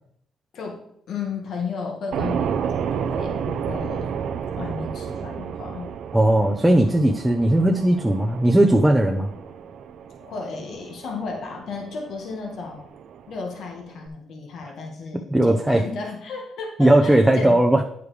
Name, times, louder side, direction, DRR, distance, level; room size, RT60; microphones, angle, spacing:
voice 1, 1.1-4.1 4.5-6.0 10.2-12.9 13.3-17.6, left 4 dB, 70° left, 1 dB, 1.7 m, -34 dB
sound 1, 2.1-14.1, right 7 dB, 75° right, 0.6 m, -32 dB
voice 2, 6.1-9.3 15.3-15.8 16.8-17.8, right 1 dB, 5° right, 2 dB, 0.7 m, -18 dB
9.4 x 6.9 x 3.3 m, 0.71 s
cardioid pair, 90°, 0 cm